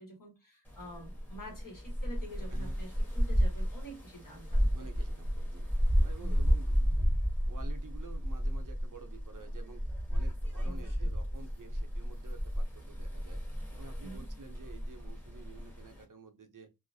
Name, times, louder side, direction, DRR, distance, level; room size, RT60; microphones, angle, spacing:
voice 1, 0.0-4.9 6.2-6.6 10.6-11.1 14.0-14.2, right 1 dB, 50° left, 1.2 m, -48 dB
sound 1, 0.7-16.0, equal, 5° left, 1.1 m, -32 dB
voice 2, 4.7-7.2 7.5-9.8 10.1-13.4 13.7-16.7, right 4 dB, 50° right, 0.6 m, -51 dB
2.3 x 2.0 x 2.5 m
wide cardioid pair, 50°, 41 cm